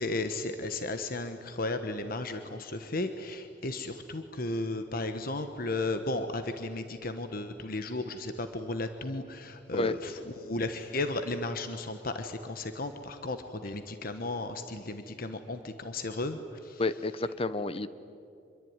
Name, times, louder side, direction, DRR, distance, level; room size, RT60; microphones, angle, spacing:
voice 1, 0.0-16.9, left 2 dB, 55° left, 8 dB, 1.2 m, -34 dB
voice 2, 16.8-17.9, left 3 dB, 30° left, 14 dB, 0.9 m, -30 dB
26.0 x 23.0 x 9.6 m, 2.6 s
head